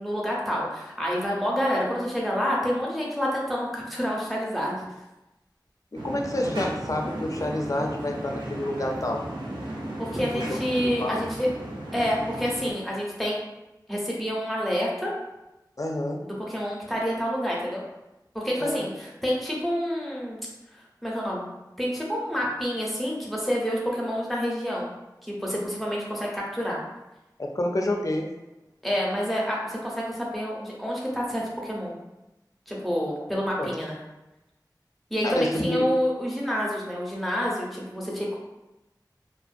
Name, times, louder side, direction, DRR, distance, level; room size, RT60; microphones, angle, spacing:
voice 1, 0.0-4.8 10.0-11.5 11.9-13.4 13.9-15.1 16.2-17.8 18.3-20.4 21.0-21.5 21.8-24.9 25.2-26.8 28.8-31.9 32.7-34.0 35.1-38.4, equal, ahead, -4 dB, 0.7 m, -28 dB
voice 2, 5.9-9.2 10.3-10.6 11.0-11.2 15.8-16.2 18.6-18.9 27.4-28.3 33.6-33.7 35.2-35.8, left 1 dB, 50° left, 1 dB, 0.4 m, -28 dB
sound 1, 5.9-12.7, right 1 dB, 85° right, 0.5 m, -35 dB
2.4 x 2.2 x 2.5 m, 0.98 s
wide cardioid pair, 40°, 8 cm